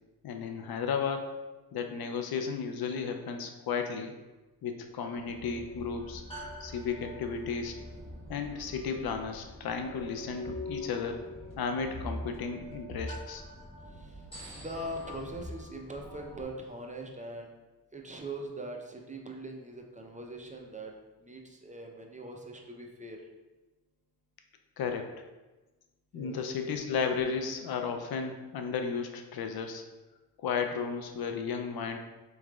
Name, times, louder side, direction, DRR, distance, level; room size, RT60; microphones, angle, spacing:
voice 1, 0.2-1.5 1.7-4.1 4.6-6.2 6.6-7.7 8.3-11.2 11.6-13.4 24.8-25.1 26.1-29.8 30.4-32.0, left 6 dB, 70° left, 5 dB, 0.5 m, -34 dB
sound 1, 5.2-16.4, left 1 dB, 15° left, 1.3 m, -43 dB
voice 2, 14.6-17.5 17.9-20.9 21.2-23.2 26.1-26.4, right 1 dB, 20° right, 1 dB, 0.5 m, -41 dB
4.7 x 3.1 x 2.3 m, 1.1 s
cardioid pair, 65°, 39 cm